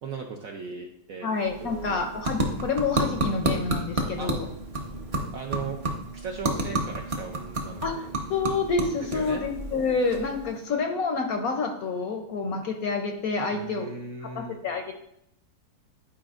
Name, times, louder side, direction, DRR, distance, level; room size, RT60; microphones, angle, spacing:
voice 1, 0.0-1.3 1.6-2.0 4.2-4.3 5.3-5.8 6.1-8.1 9.0-9.4 13.5-14.6, right 5 dB, 70° right, 2 dB, 0.8 m, -37 dB
voice 2, 1.2-4.4 7.8-8.0 8.3-13.9 14.2-14.9, left 4 dB, 70° left, 4 dB, 0.9 m, -28 dB
sound 1, 1.3-10.7, right 1 dB, 35° right, 0.5 m, -31 dB
10.5 x 5.0 x 2.4 m, 0.77 s
omnidirectional pair, 2.0 m